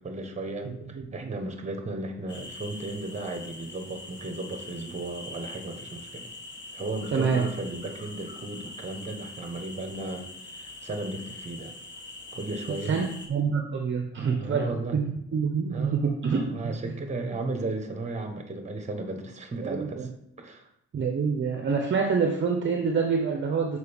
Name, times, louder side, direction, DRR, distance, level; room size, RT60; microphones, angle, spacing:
voice 1, 0.0-6.3 6.7-11.7 12.3-13.0 14.1-15.0 15.7-20.1 20.4-20.7, right 2 dB, 25° right, 5 dB, 1.2 m, -35 dB
voice 2, 0.6-1.3 7.1-7.5 12.8-13.0 13.3-16.7 19.6-20.1 20.9-23.8, right 5 dB, 40° right, 3 dB, 0.8 m, -27 dB
sound 1, 2.3-13.3, left 2 dB, 35° left, 1.3 m, -43 dB
6.6 x 4.6 x 3.5 m, 0.80 s
cardioid pair, 90°, 30 cm